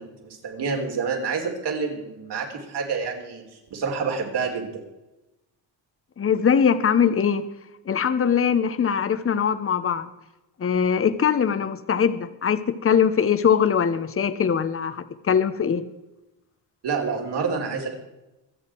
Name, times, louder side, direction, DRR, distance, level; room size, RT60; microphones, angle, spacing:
voice 1, 0.0-4.8 16.8-17.9, right 5 dB, 60° right, 1 dB, 4.1 m, -28 dB
voice 2, 6.2-7.5 7.9-10.1 10.6-15.8, left 7 dB, 30° left, 12 dB, 1.0 m, -22 dB
24.5 x 8.2 x 4.6 m, 0.99 s
cardioid pair, 95°, 44 cm